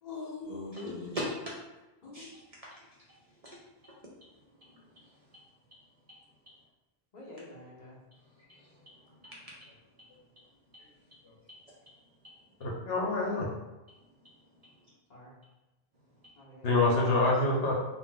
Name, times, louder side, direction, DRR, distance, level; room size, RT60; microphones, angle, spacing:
voice 1, 0.0-1.2 2.0-2.3 7.1-8.0 15.1-15.3 16.4-17.3, left 3 dB, 45° left, -4 dB, 0.8 m, -44 dB
voice 2, 4.6-5.0 8.3-9.7, equal, 50° right, -5 dB, 0.5 m, -41 dB
voice 3, 12.6-13.5 16.6-17.7, left 2 dB, 75° left, -2 dB, 0.9 m, -26 dB
2.4 x 2.0 x 3.8 m, 1.0 s
omnidirectional pair, 1.1 m